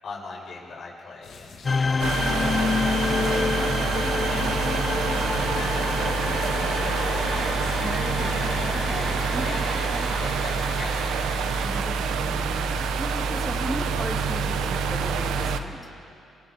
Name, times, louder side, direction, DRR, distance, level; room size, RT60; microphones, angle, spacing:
voice 1, 0.0-6.8 9.4-11.8, left 3 dB, 55° left, -4 dB, 7.8 m, -41 dB
sound 1, 1.2-9.2, left 4 dB, 75° left, 5.5 m, -40 dB
sound 2, 1.6-11.7, left 4 dB, 35° left, 0.4 m, -29 dB
sound 3, 2.0-15.6, right 5 dB, 85° right, 1.1 m, -26 dB
voice 2, 7.8-9.5 9.9-10.3 11.6-15.9, equal, 10° right, 3 dB, 2.4 m, -36 dB
29.0 x 26.0 x 4.4 m, 2.6 s
cardioid pair, 90°, 0 cm